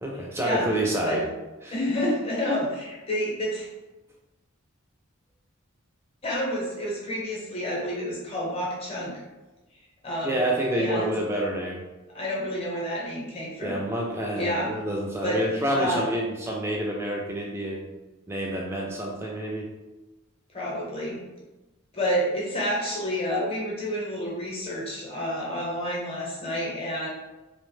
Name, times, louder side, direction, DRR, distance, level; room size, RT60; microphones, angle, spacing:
voice 1, 0.0-1.3 1.6-1.7 10.2-11.8 13.6-17.9 18.3-19.7, right 1 dB, 10° right, -1 dB, 0.3 m, -28 dB
voice 2, 1.7-3.7 6.2-9.2 10.0-10.4 10.7-11.1 12.1-13.8 14.3-14.7 15.2-15.4 15.7-16.0 20.5-21.2 21.9-27.1, equal, 25° left, -4 dB, 0.7 m, -29 dB
2.7 x 2.0 x 3.1 m, 1.1 s
head